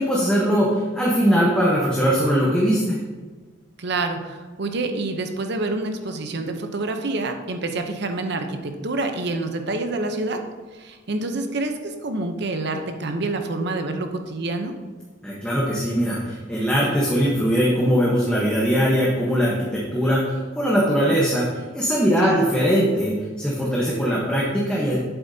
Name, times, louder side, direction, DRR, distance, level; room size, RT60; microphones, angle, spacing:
voice 1, 0.0-3.0 15.2-25.0, equal, 5° left, -5 dB, 1.1 m, -21 dB
voice 2, 3.8-10.4 10.7-14.7 22.2-22.4, right 2 dB, 65° right, 6 dB, 0.8 m, -27 dB
8.0 x 7.9 x 2.8 m, 1.4 s
head